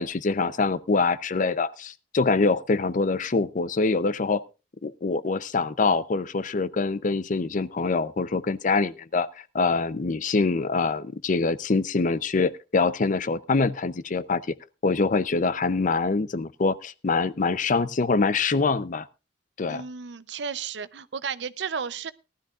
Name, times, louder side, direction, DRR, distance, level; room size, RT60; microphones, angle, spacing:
voice 1, 0.0-4.4 4.8-9.3 9.5-14.5 14.8-19.1 19.6-19.8, left 4 dB, 45° left, 17 dB, 0.6 m, -24 dB
voice 2, 19.7-22.1, right 6 dB, 75° right, 16 dB, 0.6 m, -33 dB
18.0 x 12.5 x 2.4 m, 0.29 s
head